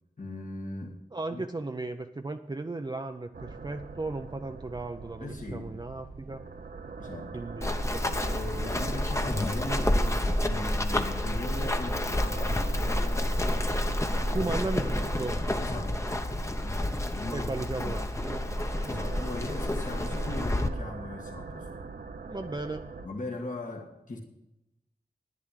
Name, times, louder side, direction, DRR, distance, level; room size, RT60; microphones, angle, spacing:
voice 1, 0.2-1.0 1.3-1.4 5.2-5.7 7.0-7.3 8.3-13.3 14.0-14.5 14.8-15.1 15.6-16.0 16.6-17.5 17.8-17.9 18.8-21.7 23.0-24.2, left 2 dB, 55° left, 1.6 m, -39 dB
voice 2, 1.1-6.5 7.3-9.0 14.3-15.4 17.3-18.4 22.3-22.8, right 2 dB, 30° right, 0.6 m, -36 dB
sound 1, 3.3-23.1, right 4 dB, 70° right, 0.9 m, -43 dB
Run, 7.6-20.7, left 1 dB, 20° left, 0.9 m, -29 dB
11.0 x 10.0 x 6.4 m
wide cardioid pair, 90°, 16 cm